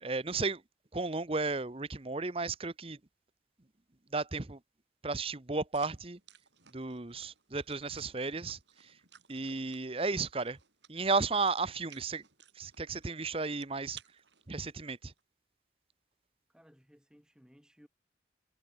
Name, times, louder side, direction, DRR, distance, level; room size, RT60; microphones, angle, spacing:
voice 1, 0.0-0.6 0.9-3.0 4.1-4.6 5.0-6.2 6.7-8.9 9.3-10.6 10.9-12.2 12.6-14.0 14.5-15.1, right 3 dB, 30° right, 0.9 m, -34 dB
sound 1, 5.7-15.2, right 9 dB, 75° right, 7.7 m, -59 dB
voice 2, 16.5-17.9, equal, 5° right, 3.6 m, -61 dB
head